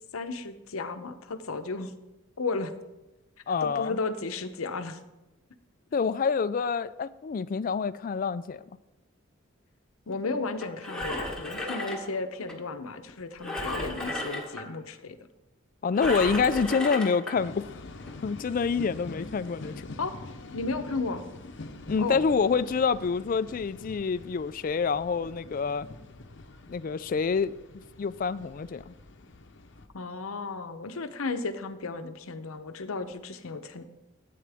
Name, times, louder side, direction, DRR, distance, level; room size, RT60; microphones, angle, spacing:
voice 1, 0.1-1.9 2.4-2.7 3.6-5.0 10.1-15.2 20.0-20.1 20.5-21.2 22.0-22.2 29.9-33.8, left 3 dB, 90° left, 0.8 m, -34 dB
voice 2, 3.5-4.0 5.9-8.6 15.8-17.6 18.2-19.9 21.9-25.8 26.7-28.9, left 5 dB, 40° left, 0.3 m, -27 dB
Engine, 10.6-12.5 13.4-14.7 16.0-17.3 18.0-18.1, left 1 dB, 5° left, 1.3 m, -34 dB
sound 1, 17.3-29.9, left 2 dB, 60° left, 0.8 m, -45 dB
13.5 x 8.6 x 3.5 m
head